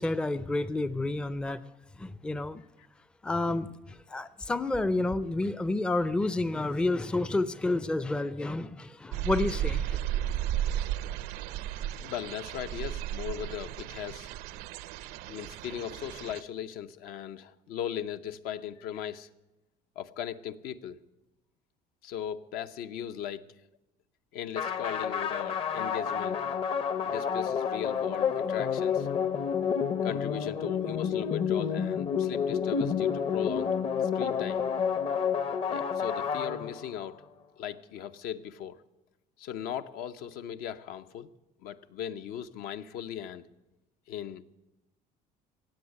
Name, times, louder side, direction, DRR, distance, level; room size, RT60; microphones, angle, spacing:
voice 1, 0.0-1.6 2.0-2.6 3.2-10.0, left 2 dB, 5° left, 0.4 m, -30 dB
sound 1, 9.1-16.4, right 11 dB, 80° right, 0.6 m, -34 dB
voice 2, 12.0-14.3 15.3-19.3 20.0-21.0 22.0-23.4 24.3-26.4 27.0-29.1 30.0-33.8 34.0-34.6 35.7-37.2 37.6-38.8 39.4-41.3 41.6-43.5 44.1-44.4, left 9 dB, 70° left, 0.8 m, -38 dB
sound 2, 24.6-37.1, left 7 dB, 35° left, 0.8 m, -29 dB
17.0 x 8.0 x 9.7 m
cardioid pair, 135°, 16 cm